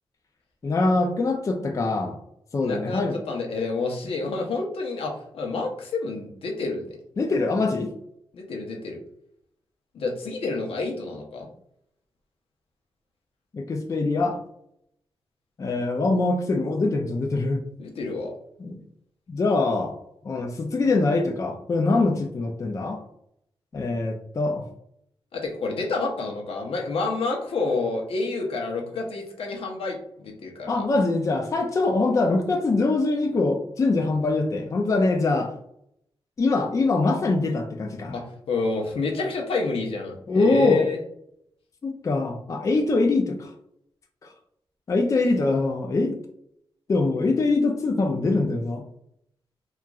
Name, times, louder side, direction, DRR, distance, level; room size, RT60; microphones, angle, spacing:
voice 1, 0.6-2.2 2.5-3.2 7.2-7.9 13.5-14.4 15.6-17.6 18.6-18.8 19.3-20.0 20.2-23.0 23.7-24.6 30.7-35.5 36.4-38.2 40.3-40.8 41.8-43.5 44.2-44.3 44.9-46.2 46.9-48.8, left 3 dB, 35° left, 3 dB, 0.4 m, -23 dB
voice 2, 2.6-6.8 8.3-9.0 9.9-11.5 17.8-18.3 25.3-30.9 38.1-41.0, left 3 dB, 80° left, 1 dB, 0.7 m, -28 dB
2.9 x 2.3 x 2.3 m, 0.73 s
wide cardioid pair, 105°, 10 cm